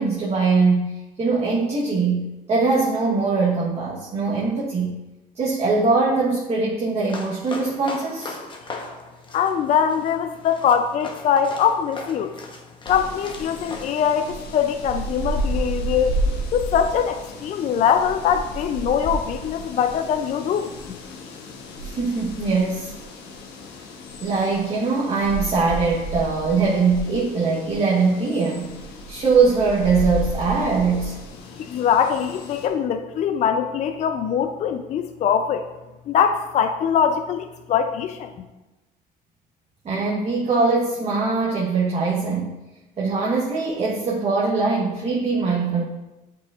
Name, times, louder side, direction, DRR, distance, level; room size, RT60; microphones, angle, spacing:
voice 1, 0.0-4.9 5.4-8.4 21.8-22.9 24.2-28.7 29.1-31.2 39.8-42.5 43.0-45.8, right 4 dB, 40° right, -5 dB, 1.1 m, -22 dB
sound 1, 7.0-13.9, left 3 dB, 30° left, 0.8 m, -38 dB
voice 2, 9.3-12.3 12.9-16.1 16.5-20.7 31.6-35.7 36.1-38.3, left 8 dB, 45° left, 7 dB, 0.4 m, -22 dB
sound 2, 12.9-32.7, right 1 dB, 85° left, 0.9 m, -32 dB
8.4 x 4.8 x 2.4 m, 1.1 s
cardioid pair, 110°, 17 cm